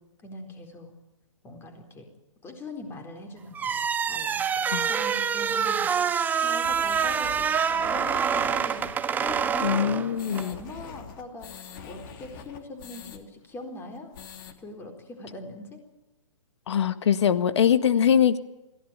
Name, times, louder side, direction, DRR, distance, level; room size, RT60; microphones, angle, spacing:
voice 1, 0.2-0.9 1.4-2.1 2.4-6.1 6.4-8.9 9.2-14.1 14.6-15.8, left 2 dB, 15° left, 5 dB, 4.2 m, -42 dB
sound 1, 3.5-10.5, right 7 dB, 10° right, 0.8 m, -26 dB
sound 2, 6.6-13.2 13.5-13.6 13.9-14.5, left 6 dB, 40° left, 2.7 m, -44 dB
voice 2, 9.6-10.6 16.7-18.4, left 8 dB, 60° left, 13 dB, 1.8 m, -22 dB
22.0 x 16.5 x 9.0 m, 0.98 s
hypercardioid pair, 135°, 16 cm